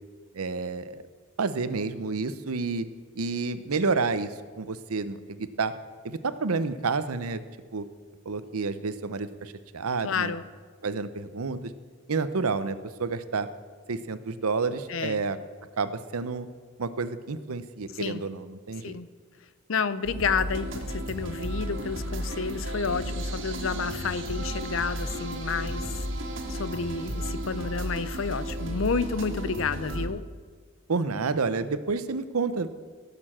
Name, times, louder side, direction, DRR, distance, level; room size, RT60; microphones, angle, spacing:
voice 1, 0.3-1.0 1.4-2.9 3.2-5.7 6.0-7.4 7.7-7.8 8.3-10.3 10.8-11.7 12.1-13.5 13.9-15.4 15.8-16.5 16.8-18.9 30.9-32.7, right 4 dB, 90° right, 13 dB, 0.7 m, -29 dB
voice 2, 10.0-10.4 14.9-15.2 17.9-18.2 18.8-19.1 19.7-26.1 26.5-30.2, left 5 dB, 65° left, 15 dB, 0.6 m, -30 dB
sound 1, 20.0-30.1, equal, 60° right, 1.8 m, -33 dB
16.5 x 6.9 x 7.4 m, 1.6 s
head